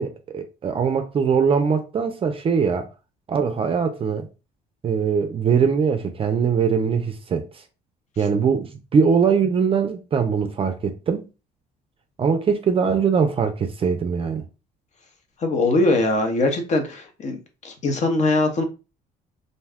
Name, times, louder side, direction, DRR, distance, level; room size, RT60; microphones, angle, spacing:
voice 1, 0.0-2.9 3.3-4.3 4.8-7.6 8.2-11.3 12.2-14.4, right 6 dB, 35° right, 0.4 m, -21 dB
voice 2, 15.4-17.4 17.6-18.6, left 2 dB, 45° left, 0.8 m, -21 dB
2.5 x 2.2 x 3.4 m
cardioid pair, 110°, 17 cm